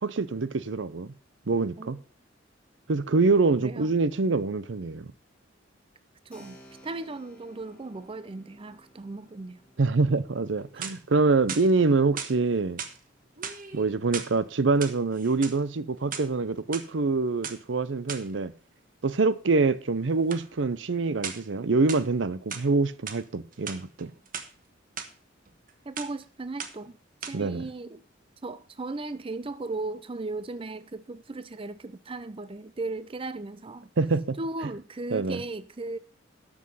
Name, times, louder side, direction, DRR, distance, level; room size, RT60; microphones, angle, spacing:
voice 1, 0.0-1.1 1.5-2.0 2.9-5.1 9.8-12.8 13.7-18.5 19.0-24.1 27.3-27.7 34.0-34.4 35.1-35.4, right 3 dB, 70° right, 0.6 m, -25 dB
Keyboard (musical), 6.3-14.7, equal, 5° left, 2.8 m, -57 dB
voice 2, 6.3-6.6 6.8-9.6 10.8-10.9 25.9-27.0 27.2-28.0 28.4-33.9 34.4-36.0, right 2 dB, 30° right, 0.5 m, -36 dB
sound 1, 10.6-11.2 11.5-12.3 12.8-13.0 13.4-14.3 14.7-15.6 16.0-16.8 17.4-17.6 18.1-18.3 20.3-20.5 21.2-21.5 21.9-22.7 23.1-23.2 23.5-24.5 25.0-25.1 25.5-25.7 26.0-26.2 26.6-26.9 27.2-27.3, right 7 dB, 50° right, 1.2 m, -37 dB
12.5 x 6.2 x 5.5 m
head